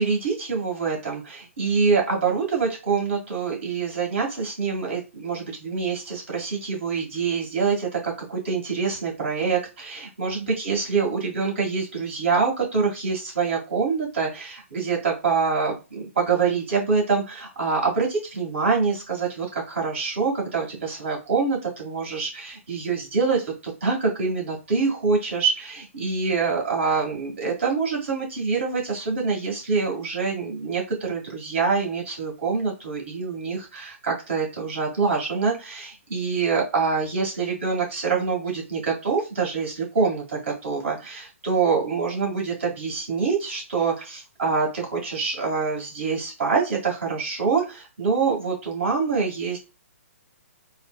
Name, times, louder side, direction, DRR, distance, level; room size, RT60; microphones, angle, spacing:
voice 1, 0.0-49.6, right 5 dB, 55° right, -1 dB, 1.7 m, -25 dB
4.1 x 2.2 x 2.2 m, 0.29 s
figure-of-eight pair, 130°, 8 cm